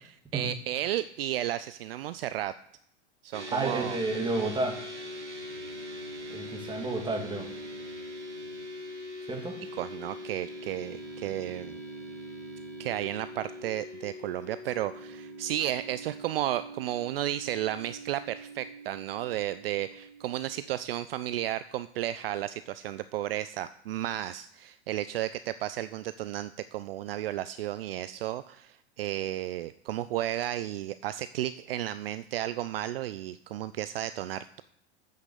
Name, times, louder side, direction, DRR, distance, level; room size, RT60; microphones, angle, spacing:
voice 1, 0.3-2.5 3.2-4.0 9.6-11.8 12.8-34.6, right 13 dB, 60° right, 14 dB, 0.4 m, -33 dB
sound 1, 3.3-20.7, equal, 85° right, 1.7 m, -42 dB
voice 2, 3.5-4.8 6.3-7.5 9.3-9.6, right 2 dB, 15° right, 3 dB, 2.0 m, -31 dB
8.0 x 6.6 x 6.7 m, 0.76 s
figure-of-eight pair, 85°, 34 cm